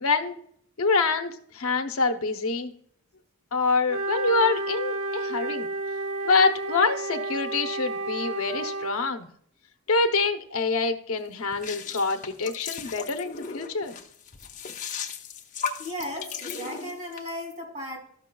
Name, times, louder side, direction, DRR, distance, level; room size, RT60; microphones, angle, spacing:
voice 1, 0.0-0.4 0.8-2.7 3.5-5.7 6.2-9.3 9.9-13.9, left 4 dB, 70° left, 6 dB, 0.7 m, -26 dB
Wind instrument woodwind instrument, 3.9-9.1, right 2 dB, 60° right, 0.5 m, -31 dB
sound 1, 11.5-17.3, left 6 dB, 35° left, 0.7 m, -36 dB
voice 2, 15.8-18.1, left 1 dB, 30° right, 2 dB, 2.7 m, -35 dB
12.5 x 6.7 x 2.2 m, 0.64 s
head